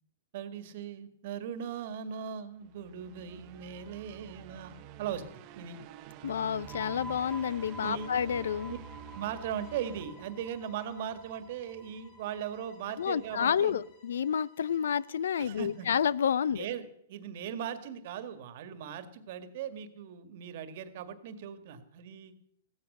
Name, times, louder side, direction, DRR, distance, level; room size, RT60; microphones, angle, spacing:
voice 1, 0.3-5.8 7.8-8.1 8.7-8.8 9.1-13.8 15.4-15.9 16.5-22.3, right 8 dB, 50° right, 11 dB, 1.9 m, -39 dB
sound 1, 2.6-10.9, right 10 dB, 35° right, 1.1 m, -49 dB
voice 2, 6.2-8.7 13.0-16.7, left 8 dB, 85° left, 22 dB, 0.6 m, -29 dB
sound 2, 6.4-13.9, right 1 dB, ahead, 0.8 m, -50 dB
Bowed string instrument, 9.5-16.4, left 4 dB, 40° left, 7.4 m, -64 dB
16.0 x 13.5 x 6.7 m, 0.70 s
hypercardioid pair, 155°, 0 cm